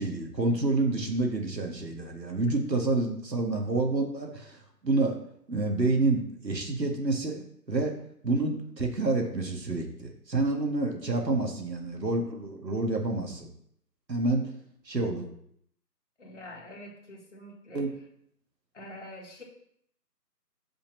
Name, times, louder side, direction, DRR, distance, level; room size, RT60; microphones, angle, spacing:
voice 1, 0.0-4.6 4.8-5.2 5.5-7.4 7.7-7.9 8.2-13.5 14.1-14.4 14.9-15.3 17.7-17.9, right 2 dB, 85° right, 3 dB, 2.0 m, -28 dB
voice 2, 16.2-17.8 18.7-19.4, left 1 dB, 45° left, 0 dB, 1.8 m, -45 dB
5.5 x 5.1 x 6.0 m, 0.70 s
figure-of-eight pair, 155°, 49 cm